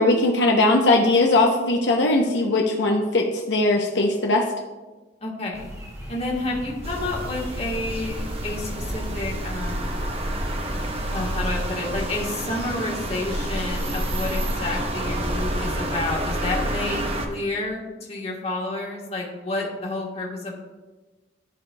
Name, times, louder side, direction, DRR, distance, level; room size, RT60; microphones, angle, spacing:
voice 1, 0.0-4.5, left 2 dB, 70° left, 0 dB, 0.7 m, -19 dB
voice 2, 5.2-5.6 6.1-10.0 11.1-20.5, left 2 dB, 35° left, -2 dB, 1.4 m, -30 dB
sound 1, 5.5-11.4, equal, 15° right, 1.8 m, -38 dB
sound 2, 6.8-17.3, right 1 dB, 30° right, 0.7 m, -28 dB
13.0 x 5.0 x 2.2 m, 1.2 s
head